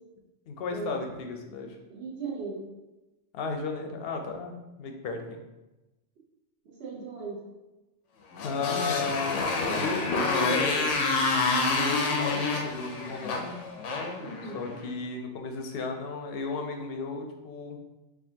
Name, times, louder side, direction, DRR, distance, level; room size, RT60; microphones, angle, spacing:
voice 1, 0.5-1.7 3.3-5.4 8.4-11.1 11.8-13.6 14.4-17.8, left 4 dB, 65° left, 3 dB, 0.7 m, -34 dB
voice 2, 1.9-2.7 6.6-7.4 14.2-14.6, right 4 dB, 65° right, -2 dB, 1.0 m, -37 dB
Motorcycle, 8.3-14.9, left 3 dB, 90° left, 0.9 m, -28 dB
4.4 x 2.5 x 2.8 m, 1.0 s
omnidirectional pair, 1.2 m